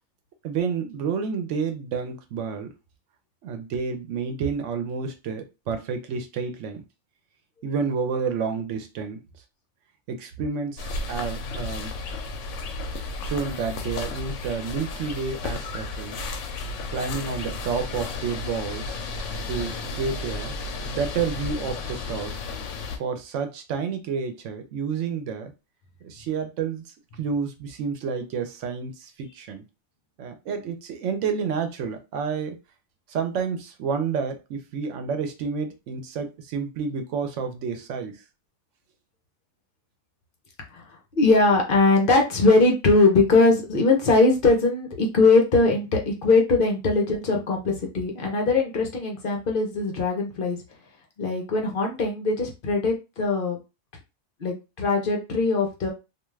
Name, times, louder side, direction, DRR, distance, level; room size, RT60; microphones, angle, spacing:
voice 1, 0.4-2.7 3.4-6.8 7.6-9.2 10.1-11.9 13.2-16.3 16.9-19.0 19.5-20.6 20.8-22.4 23.0-25.5 26.0-26.8 27.2-29.6 30.2-32.6 33.1-38.2, right 6 dB, 90° right, 6 dB, 1.0 m, -30 dB
sound 1, 10.8-23.0, left 3 dB, 85° left, 0.9 m, -33 dB
voice 2, 41.1-50.6 51.2-53.6 54.4-55.9, left 3 dB, 55° left, 1 dB, 0.8 m, -21 dB
2.5 x 2.3 x 3.1 m, 0.27 s
omnidirectional pair, 1.2 m